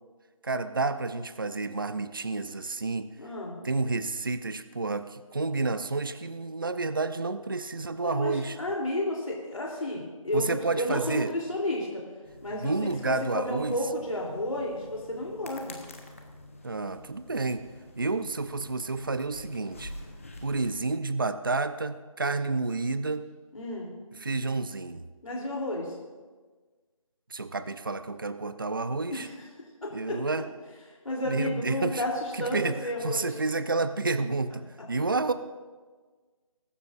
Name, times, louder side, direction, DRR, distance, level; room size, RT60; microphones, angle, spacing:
voice 1, 0.4-3.1 3.6-8.6 10.3-11.3 12.5-13.8 16.6-17.6 18.0-19.9 20.4-23.3 24.2-25.1 27.3-29.3 29.9-30.5 31.2-32.0 32.3-35.3, right 3 dB, 40° right, 12 dB, 0.5 m, -30 dB
voice 2, 3.2-3.6 8.0-12.0 12.4-15.8 23.5-23.9 25.2-25.9 29.1-29.5 29.8-30.2 31.0-33.3, left 1 dB, 70° left, -2 dB, 3.2 m, -32 dB
sound 1, 12.2-20.8, left 1 dB, 25° left, 1.0 m, -47 dB
23.0 x 12.5 x 2.5 m, 1.4 s
figure-of-eight pair, 175°, 18 cm